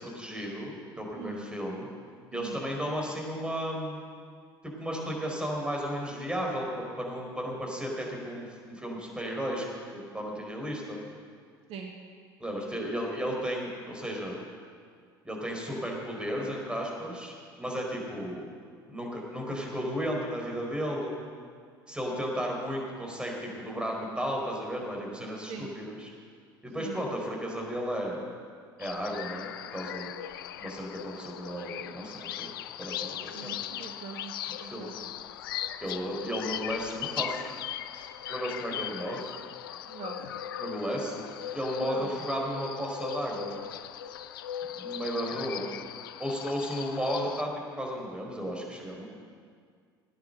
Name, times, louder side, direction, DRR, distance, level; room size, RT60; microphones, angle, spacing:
voice 1, 0.0-1.9 2.3-4.0 4.6-9.7 9.9-11.0 12.4-14.3 15.2-18.5 18.9-21.2 21.9-26.1 26.6-28.2 28.8-30.1 30.6-32.5 32.8-33.6 34.5-34.9 35.8-37.4 37.9-39.3 40.6-41.3 41.5-43.5 44.8-45.7 46.2-47.5 47.8-49.1, equal, 10° right, -1 dB, 4.5 m, -34 dB
voice 2, 2.3-2.6 11.7-11.9 25.5-25.7 26.8-27.0 33.3-34.3 34.6-34.9 39.9-40.2 41.8-42.1, right 6 dB, 55° right, 2 dB, 1.5 m, -41 dB
sound 1, 28.8-47.4, left 11 dB, 75° left, 0.5 m, -39 dB
18.0 x 9.7 x 6.6 m, 2.1 s
figure-of-eight pair, 65°, 12 cm